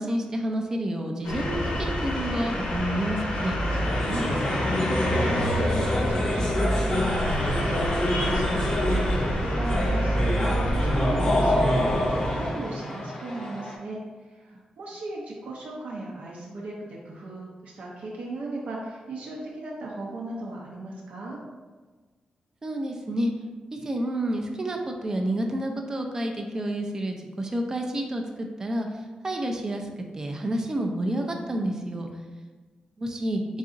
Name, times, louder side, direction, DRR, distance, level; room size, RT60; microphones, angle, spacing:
voice 1, 0.0-3.6 22.6-23.3 23.7-28.9 29.2-32.1 33.0-33.4, right 1 dB, 25° right, 2 dB, 0.4 m, -29 dB
sound 1, 1.2-12.5, equal, 90° left, 0.8 m, -27 dB
sound 2, 3.0-13.7, left 1 dB, 25° left, 0.6 m, -28 dB
voice 2, 4.1-21.4, right 2 dB, 75° right, -4 dB, 0.6 m, -37 dB
4.0 x 3.7 x 2.5 m, 1.3 s
wide cardioid pair, 170°, 2 cm